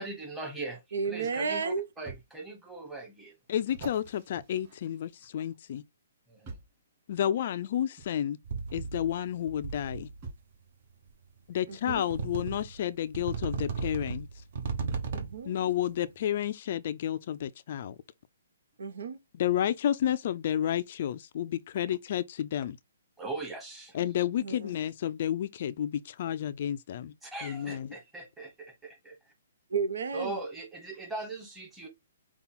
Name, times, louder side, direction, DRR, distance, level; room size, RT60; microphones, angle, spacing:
voice 1, 0.0-3.3 6.3-6.6 23.2-24.0 27.2-29.3 30.1-31.9, right 2 dB, 5° right, 1.1 m, -40 dB
voice 2, 0.9-1.8 11.7-12.1 15.1-15.5 18.8-19.2 24.4-24.7 29.7-30.4, right 5 dB, 75° right, 0.9 m, -32 dB
sound 1, 2.1-2.2 2.9-3.0 3.7-5.6 6.4-6.8 8.0-8.1 9.4-9.5 10.2-10.6 11.9-12.1 13.7-13.8 14.9-15.2 16.0-16.1, right 4 dB, 25° right, 2.8 m, -45 dB
voice 3, 3.5-5.8 7.1-8.4 8.7-10.1 11.5-14.3 15.5-18.0 19.3-22.8 23.9-27.1 27.4-27.9, left 10 dB, 45° left, 0.3 m, -31 dB
sound 2, 8.4-9.2 9.5-10.2 11.1-11.2 12.1-12.8 13.1-15.5, right 5 dB, 50° right, 1.1 m, -35 dB
5.4 x 2.3 x 4.2 m
hypercardioid pair, 165°, 0 cm